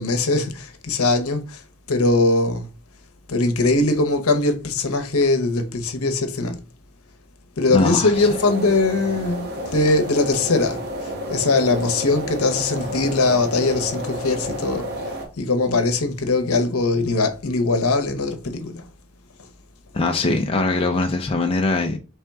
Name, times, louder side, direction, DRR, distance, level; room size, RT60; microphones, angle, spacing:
voice 1, 0.0-1.6 1.9-2.7 3.3-6.6 7.6-14.9 15.4-18.8, left 3 dB, 70° left, 0.8 m, -21 dB
voice 2, 7.7-8.3 19.9-22.0, left 3 dB, 25° left, 0.4 m, -21 dB
sound 1, 8.1-15.3, equal, 50° right, 1.2 m, -31 dB
4.3 x 3.4 x 3.5 m
head